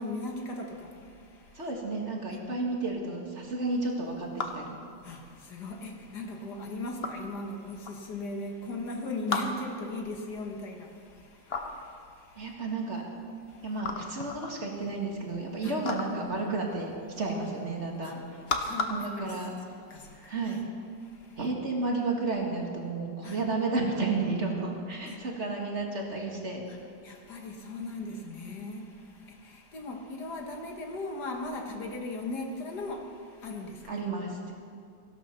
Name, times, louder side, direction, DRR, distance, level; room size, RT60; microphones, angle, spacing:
voice 1, 0.0-1.7 2.3-2.4 5.0-12.5 13.5-13.7 15.6-15.8 17.3-17.5 18.0-18.2 18.6-19.4 19.9-20.6 21.0-21.4 23.2-23.4 25.1-25.2 26.7-26.8 27.0-33.9, left 2 dB, 70° left, 2 dB, 2.0 m, -38 dB
voice 2, 1.5-4.8 12.4-13.0 13.6-18.2 18.9-19.5 20.1-20.6 21.4-26.7 33.9-34.5, right 3 dB, 40° right, 0 dB, 2.1 m, -32 dB
sound 1, 3.8-20.2, left 4 dB, 40° left, 1.0 m, -39 dB
16.0 x 12.5 x 5.8 m, 2.3 s
omnidirectional pair, 1.9 m